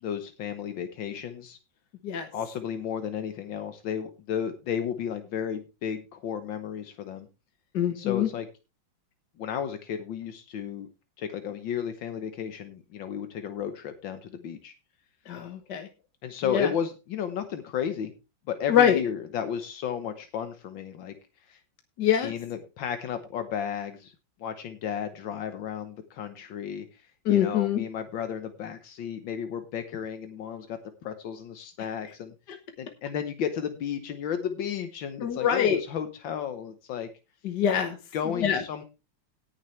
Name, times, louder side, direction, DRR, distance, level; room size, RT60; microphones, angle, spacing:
voice 1, 0.0-1.6 2.3-7.3 7.9-8.5 9.4-10.9 11.2-14.7 16.2-18.1 18.5-21.1 21.5-21.6 22.2-24.1 24.4-26.9 27.3-32.3 32.8-37.1 38.1-38.8, left 8 dB, 80° left, 8 dB, 1.8 m, -33 dB
voice 2, 7.7-8.3 15.3-15.9 16.5-16.7 18.7-19.0 22.0-22.3 27.2-27.8 35.2-35.8 37.4-38.0 38.4-38.6, left 9 dB, 65° left, 6 dB, 1.7 m, -24 dB
18.0 x 7.3 x 3.2 m, 0.28 s
omnidirectional pair, 2.0 m